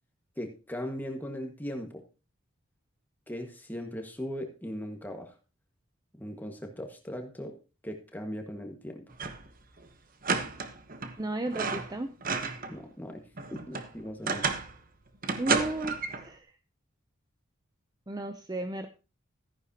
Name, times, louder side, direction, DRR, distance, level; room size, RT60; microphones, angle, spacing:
voice 1, 0.4-2.0 3.3-5.4 6.2-7.5 7.8-9.0 12.7-13.2 13.5-14.5, equal, 10° left, 3 dB, 1.6 m, -38 dB
sound 1, 9.1-9.5 9.8-9.9 10.2-11.2 11.5-12.8 13.1-14.8 15.2-16.3, right 4 dB, 40° right, 1.1 m, -31 dB
voice 2, 11.2-12.1 15.4-16.5 18.1-18.9, right 2 dB, 20° right, 8 dB, 0.6 m, -34 dB
14.0 x 10.0 x 2.9 m, 0.31 s
head